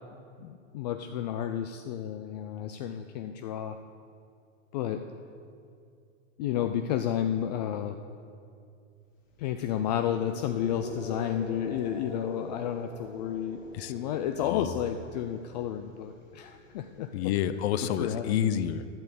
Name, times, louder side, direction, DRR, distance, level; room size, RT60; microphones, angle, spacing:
voice 1, 0.4-3.8 4.7-5.0 6.4-8.0 9.4-17.1 18.0-18.4, left 10 dB, 35° left, 7 dB, 0.4 m, -31 dB
sound 1, 9.3-17.4, left 3 dB, 85° left, 3.0 m, -44 dB
voice 2, 14.4-14.8 17.1-18.9, left 9 dB, 55° left, 12 dB, 0.8 m, -29 dB
12.0 x 6.9 x 8.0 m, 2.4 s
hypercardioid pair, 145°, 38 cm